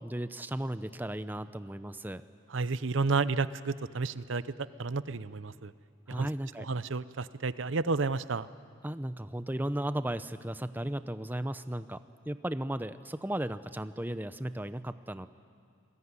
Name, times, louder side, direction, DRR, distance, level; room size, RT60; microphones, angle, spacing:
voice 1, 0.0-2.2 6.1-6.7 8.8-12.0 12.2-15.3, right 1 dB, 10° right, 12 dB, 0.7 m, -35 dB
voice 2, 2.5-5.7 6.1-6.3 6.7-8.5, right 4 dB, 70° right, 15 dB, 0.7 m, -31 dB
28.0 x 21.5 x 9.8 m, 2.2 s
head